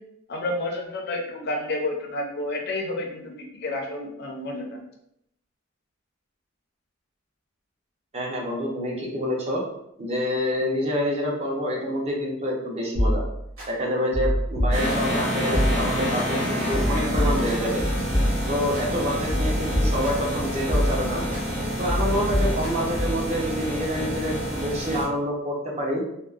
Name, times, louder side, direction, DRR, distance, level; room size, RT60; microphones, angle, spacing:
voice 1, 0.3-4.8, left 2 dB, 55° left, 1 dB, 0.5 m, -30 dB
voice 2, 8.1-9.6 10.0-13.2 13.7-17.8 18.5-21.2 21.8-26.0, equal, 30° right, -2 dB, 0.6 m, -27 dB
sound 1, 12.9-13.7 14.1-15.2 15.5-16.3 16.7-18.8 19.3-20.3 20.7-21.4 21.9-23.3, equal, 90° right, 1.4 m, -26 dB
sound 2, 14.7-25.0, equal, 50° right, 1.1 m, -28 dB
3.6 x 2.0 x 2.4 m, 0.77 s
head